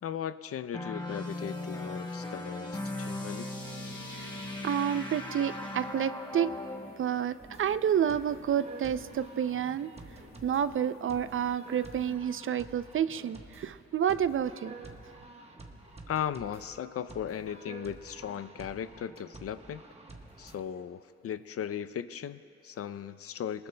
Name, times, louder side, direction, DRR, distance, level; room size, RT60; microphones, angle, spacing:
voice 1, 0.0-3.5 16.1-19.8 20.4-23.7, left 9 dB, 55° left, 13 dB, 0.5 m, -37 dB
sound 1, 0.7-6.9, left 1 dB, 15° left, 1.2 m, -38 dB
sound 2, 3.2-12.1, left 4 dB, 75° left, 2.8 m, -53 dB
voice 2, 4.6-6.5 7.0-9.9 10.4-14.8, right 9 dB, 45° right, 14 dB, 0.4 m, -29 dB
sound 3, 7.4-20.6, right 3 dB, 20° right, 1.1 m, -50 dB
26.0 x 20.0 x 2.2 m, 2.8 s
wide cardioid pair, 125°, 29 cm